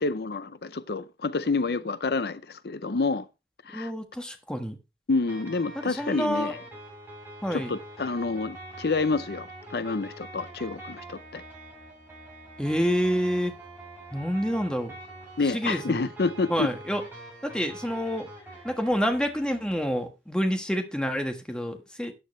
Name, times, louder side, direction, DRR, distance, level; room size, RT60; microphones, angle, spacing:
voice 1, 0.0-3.3 3.7-3.9 5.1-6.6 7.5-11.4 15.4-16.7, left 3 dB, 65° left, 0.6 m, -28 dB
voice 2, 3.7-4.8 5.8-6.5 7.4-7.8 12.6-13.5 14.1-14.9 15.4-16.1 16.5-17.0 17.4-18.3 18.6-22.1, equal, 5° left, 1.5 m, -28 dB
sound 1, 5.3-20.0, right 1 dB, 10° right, 7.4 m, -45 dB
13.5 x 9.5 x 3.2 m
head